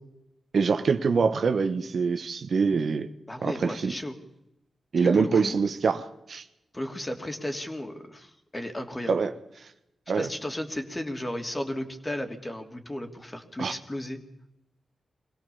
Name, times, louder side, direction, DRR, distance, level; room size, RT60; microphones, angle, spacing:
voice 1, 0.5-3.1 3.4-3.9 4.9-6.4 9.1-9.3 10.1-10.3 13.6-13.8, right 5 dB, 70° right, 1.3 m, -24 dB
voice 2, 3.3-4.1 5.0-5.5 6.7-9.3 10.1-14.2, left 1 dB, 25° left, 3.1 m, -34 dB
24.0 x 17.0 x 7.1 m
supercardioid pair, 40°, 0 cm